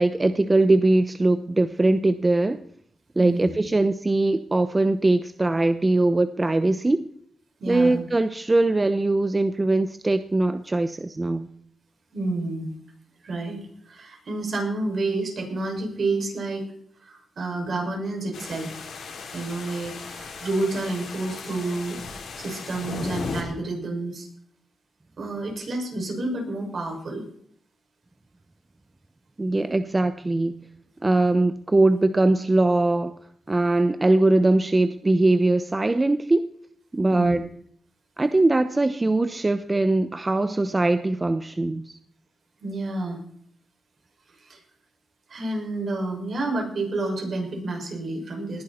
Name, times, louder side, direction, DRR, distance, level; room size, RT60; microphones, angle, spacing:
voice 1, 0.0-2.6 3.2-7.1 7.7-11.5 29.4-30.6 31.0-33.2 33.5-36.5 36.9-37.5 38.2-42.0, right 2 dB, 25° right, 11 dB, 0.8 m, -21 dB
voice 2, 3.2-3.5 7.6-8.0 12.1-12.7 13.2-13.6 13.9-16.6 17.0-18.7 19.3-22.0 22.4-24.3 25.2-27.2 37.1-37.4 42.6-43.2 44.4-44.6 45.3-48.6, right 2 dB, 60° right, 0 dB, 6.3 m, -29 dB
sound 1, 18.3-23.4, left 4 dB, 80° left, 4.2 m, -36 dB
19.5 x 11.0 x 4.4 m, 0.63 s
cardioid pair, 80°, 0 cm